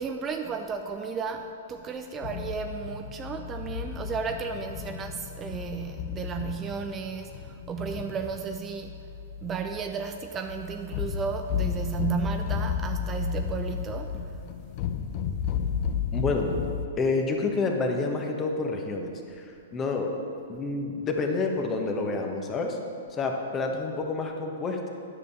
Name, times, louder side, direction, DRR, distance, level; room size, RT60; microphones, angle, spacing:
voice 1, 0.0-9.0 9.4-14.4, right 6 dB, 25° right, 5 dB, 0.5 m, -34 dB
sound 1, 2.2-16.9, left 7 dB, 45° left, 0.7 m, -33 dB
voice 2, 16.1-16.5 17.0-19.1 19.4-20.1 20.5-22.8 23.1-24.9, left 3 dB, 25° left, 2 dB, 1.3 m, -28 dB
10.0 x 5.4 x 6.8 m, 2.5 s
hypercardioid pair, 120°, 0 cm